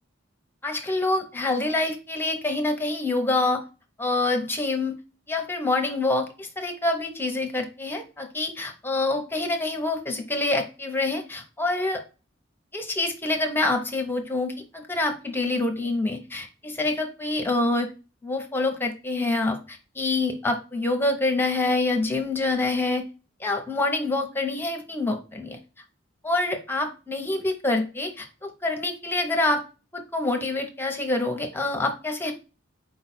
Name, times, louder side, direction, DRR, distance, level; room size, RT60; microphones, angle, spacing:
voice 1, 0.6-3.6 4.0-4.9 5.3-12.0 12.7-17.9 18.2-23.0 23.4-25.6 26.2-29.6 29.9-32.3, left 2 dB, 10° left, 4 dB, 0.7 m, -26 dB
4.5 x 2.3 x 4.1 m, 0.32 s
head